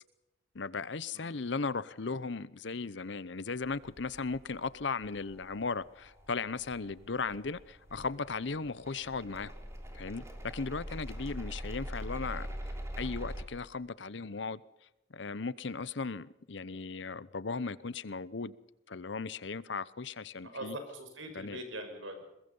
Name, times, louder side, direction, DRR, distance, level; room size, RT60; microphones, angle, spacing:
voice 1, 0.5-9.5 9.9-14.6 15.1-18.6 18.9-20.8 21.3-21.6, left 4 dB, 65° left, 19 dB, 0.8 m, -37 dB
sound 1, 3.6-13.4, equal, 15° right, 2.9 m, -44 dB
voice 2, 20.4-22.2, right 1 dB, 80° right, 6 dB, 5.6 m, -42 dB
22.5 x 21.5 x 5.5 m, 0.90 s
head